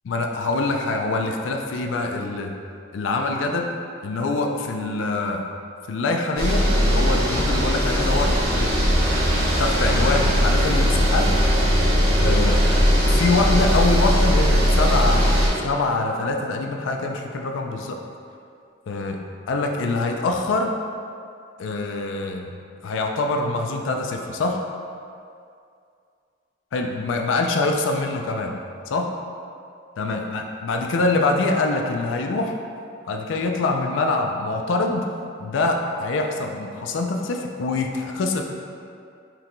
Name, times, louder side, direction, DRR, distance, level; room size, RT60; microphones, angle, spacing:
voice 1, 0.0-2.5 2.9-3.7 4.0-5.4 5.9-8.8 9.6-11.4 12.2-12.6 13.1-18.0 18.9-19.2 19.5-20.8 21.6-22.5 22.8-24.6 26.7-28.6 28.9-29.1 30.0-32.6 33.0-35.1 35.4-38.4, left 3 dB, 80° left, 2 dB, 0.4 m, -24 dB
sound 1, 6.4-15.5, equal, 55° right, 0.7 m, -19 dB
4.5 x 2.2 x 3.8 m, 2.4 s
head